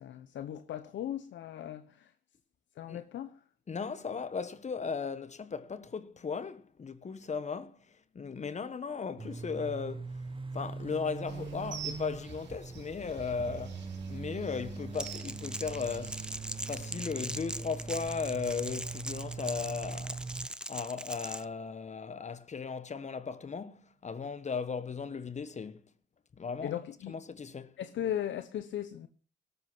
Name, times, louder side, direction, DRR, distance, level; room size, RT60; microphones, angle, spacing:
voice 1, 0.0-2.1 2.8-3.4 26.6-27.2 27.8-29.1, left 11 dB, 70° left, 1.0 m, -37 dB
voice 2, 3.7-10.2 10.5-16.2 16.7-20.3 20.7-25.8 26.4-26.7 27.1-27.8, left 5 dB, 35° left, 1.2 m, -37 dB
sound 1, 9.2-20.5, right 4 dB, 25° right, 1.0 m, -42 dB
sound 2, 11.3-16.8, right 7 dB, 65° right, 4.3 m, -48 dB
Crackle, 14.9-21.4, right 1 dB, 5° right, 0.7 m, -41 dB
18.0 x 7.9 x 6.0 m
cardioid pair, 90°, 20 cm